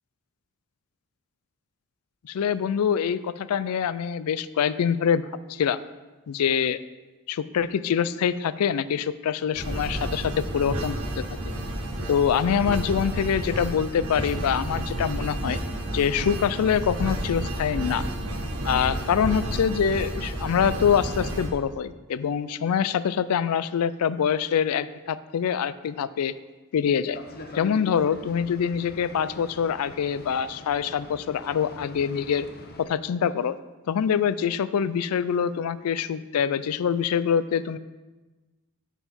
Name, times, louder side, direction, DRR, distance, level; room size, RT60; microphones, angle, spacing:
voice 1, 2.2-5.8 6.3-6.8 7.3-11.2 12.1-15.6 15.9-18.0 18.6-26.3 26.7-27.2 27.5-32.5 32.8-33.6 33.9-37.8, left 7 dB, 80° left, 15 dB, 0.4 m, -25 dB
sound 1, 9.5-21.5, right 1 dB, 85° right, 1.3 m, -31 dB
Boat Water vehicle, 27.1-32.8, left 2 dB, 45° left, 0.8 m, -43 dB
8.9 x 5.7 x 4.2 m, 1.2 s
head